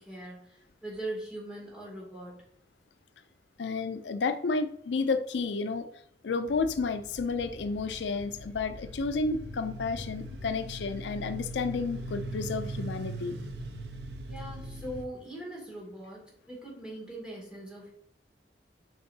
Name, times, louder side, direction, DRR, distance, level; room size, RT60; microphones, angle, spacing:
voice 1, 0.0-2.4 14.3-17.9, right 1 dB, 5° right, -4 dB, 2.3 m, -41 dB
voice 2, 3.6-5.9 6.2-13.4, left 4 dB, 85° left, 10 dB, 0.4 m, -31 dB
sound 1, 6.5-15.1, right 1 dB, 75° right, 0.7 m, -40 dB
7.8 x 4.7 x 2.7 m, 0.68 s
head